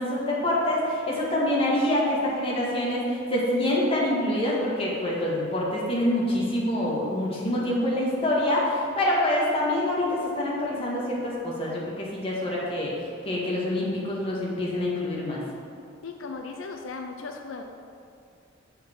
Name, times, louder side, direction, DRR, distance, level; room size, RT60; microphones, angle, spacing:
voice 1, 0.0-12.9 13.2-15.4, left 1 dB, 30° left, -5 dB, 1.8 m, -26 dB
voice 2, 16.0-17.6, left 4 dB, 85° left, 4 dB, 0.6 m, -37 dB
7.1 x 7.0 x 4.6 m, 2.5 s
head